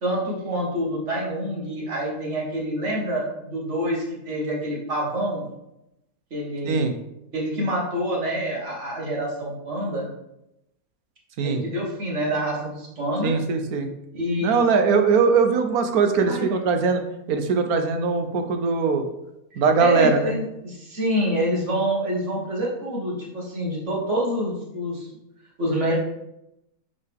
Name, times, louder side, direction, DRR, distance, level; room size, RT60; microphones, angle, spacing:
voice 1, 0.0-5.4 6.3-6.9 7.3-10.1 11.4-13.3 14.1-14.6 16.3-16.4 19.8-25.1 25.6-25.9, equal, 50° right, -3 dB, 1.9 m, -26 dB
voice 2, 13.2-13.9 14.4-19.1 19.5-20.3, right 5 dB, 70° right, 6 dB, 1.2 m, -21 dB
7.4 x 4.2 x 3.5 m, 0.86 s
omnidirectional pair, 1.7 m